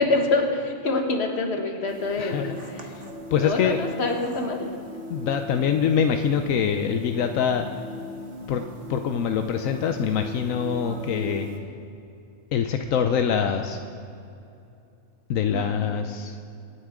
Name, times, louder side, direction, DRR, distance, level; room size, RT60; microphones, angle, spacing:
voice 1, 0.0-2.9 3.4-4.7 15.5-15.8, left 3 dB, 55° left, 3 dB, 1.7 m, -26 dB
sound 1, 1.9-11.6, left 1 dB, 60° right, 1.7 m, -39 dB
voice 2, 2.2-2.6 2.9-3.0 3.3-3.8 5.1-7.6 8.5-8.6 8.9-11.5 12.5-13.8 15.3-16.4, left 7 dB, 85° left, 6 dB, 1.1 m, -24 dB
25.5 x 9.6 x 3.7 m, 2.6 s
omnidirectional pair, 1.4 m